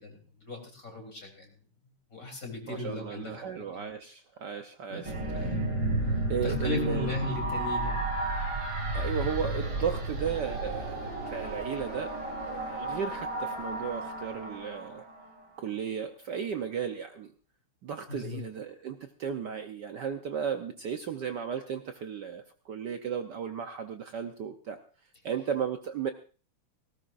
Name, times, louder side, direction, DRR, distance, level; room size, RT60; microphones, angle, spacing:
voice 1, 0.0-1.5 2.1-3.6 4.9-5.1 5.4-5.7 6.4-8.0 18.1-18.4, left 2 dB, 35° left, 1 dB, 4.0 m, -36 dB
voice 2, 2.7-5.5 6.3-7.1 8.9-12.2 12.4-15.1 15.6-17.3 17.8-24.8 25.2-26.1, right 7 dB, 60° right, 6 dB, 1.3 m, -35 dB
sound 1, 5.0-15.4, right 2 dB, 85° right, 5.9 m, -33 dB
18.5 x 18.0 x 2.6 m, 0.36 s
omnidirectional pair, 2.4 m